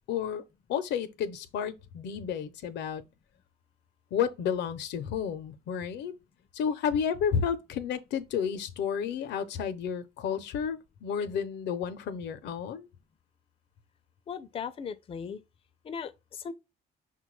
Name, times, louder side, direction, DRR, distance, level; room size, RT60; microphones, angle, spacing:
voice 1, 0.1-0.4 0.7-3.0 4.1-6.1 6.5-12.9, left 7 dB, 85° left, 0.5 m, -31 dB
voice 2, 14.3-15.4 15.8-16.5, left 6 dB, 35° left, 0.4 m, -38 dB
5.6 x 2.2 x 3.1 m
cardioid pair, 105°, 18 cm